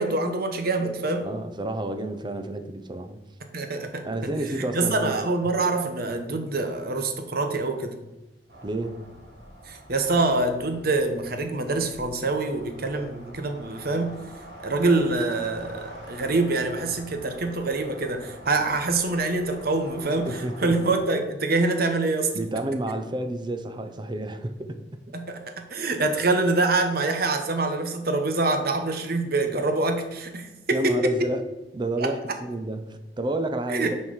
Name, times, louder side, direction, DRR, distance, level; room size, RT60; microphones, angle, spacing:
voice 1, 0.0-1.3 3.5-4.3 4.6-8.0 9.7-14.2 14.6-22.4 25.1-25.4 25.7-31.1 32.0-32.1 33.7-33.9, right 2 dB, 60° right, 6 dB, 1.1 m, -25 dB
voice 2, 1.2-3.2 4.0-5.3 8.6-9.1 20.2-20.7 22.3-24.8 30.7-31.4 31.7-33.9, right 1 dB, 25° right, 8 dB, 0.7 m, -30 dB
sound 1, 8.5-21.0, right 1 dB, 75° right, 3.1 m, -45 dB
6.9 x 4.5 x 6.4 m, 1.0 s
head